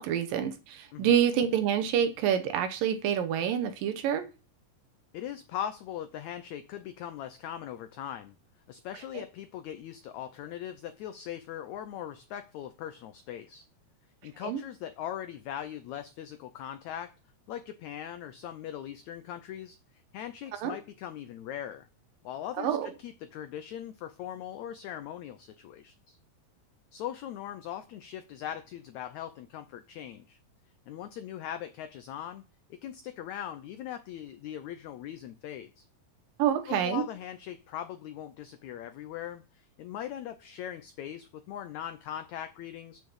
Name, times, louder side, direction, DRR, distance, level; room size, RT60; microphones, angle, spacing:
voice 1, 0.0-4.3 9.1-9.2 14.4-14.6 20.6-20.8 22.6-22.9 36.4-37.1, right 9 dB, 75° right, 9 dB, 2.6 m, -27 dB
voice 2, 5.1-8.3 8.7-13.7 14.2-17.1 17.5-19.8 20.1-21.9 22.2-26.2 26.9-30.4 30.9-32.4 32.7-35.8 36.7-43.0, left 10 dB, 90° left, 10 dB, 1.6 m, -40 dB
8.4 x 6.4 x 7.1 m, 0.32 s
omnidirectional pair, 4.1 m